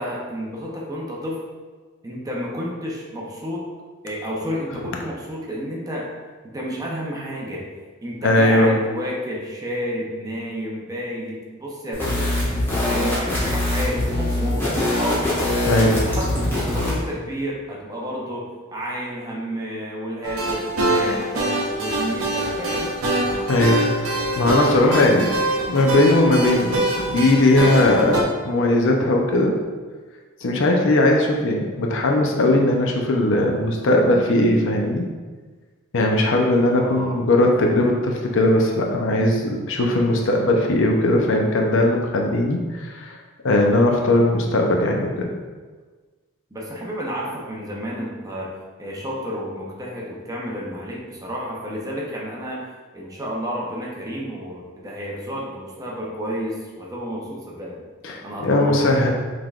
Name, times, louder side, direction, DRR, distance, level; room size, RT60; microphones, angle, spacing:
voice 1, 0.0-1.4 2.0-3.7 4.0-6.1 6.4-7.7 8.0-12.3 12.8-15.3 15.7-22.9 36.7-37.2 46.5-48.5 48.8-52.6 52.9-57.8 58.2-59.1, equal, 15° right, -3 dB, 0.7 m, -31 dB
voice 2, 8.2-8.7 15.7-16.0 23.5-25.3 25.6-29.6 30.4-35.1 35.9-43.2 43.4-45.3 58.0-59.1, left 1 dB, 65° left, 1 dB, 0.6 m, -19 dB
sound 1, 11.9-17.0, left 1 dB, 10° left, 1.3 m, -23 dB
sound 2, 20.2-28.2, right 1 dB, 80° right, 0.7 m, -24 dB
5.7 x 3.3 x 2.4 m, 1.4 s
head